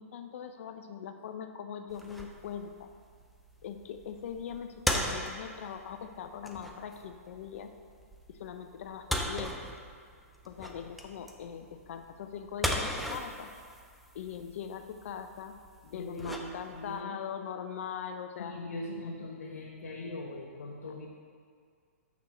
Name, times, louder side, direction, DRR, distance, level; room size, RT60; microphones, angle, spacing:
voice 1, 0.0-2.9 3.6-7.7 8.3-9.5 10.5-13.5 14.1-15.6 15.8-18.5, left 8 dB, 60° left, 7 dB, 0.6 m, -41 dB
sound 1, 1.9-17.0, equal, ahead, 0.5 m, -38 dB
voice 2, 15.9-17.2 18.4-21.1, left 2 dB, 85° left, -3 dB, 0.9 m, -41 dB
7.3 x 5.9 x 4.3 m, 2.1 s
hypercardioid pair, 140°, 8 cm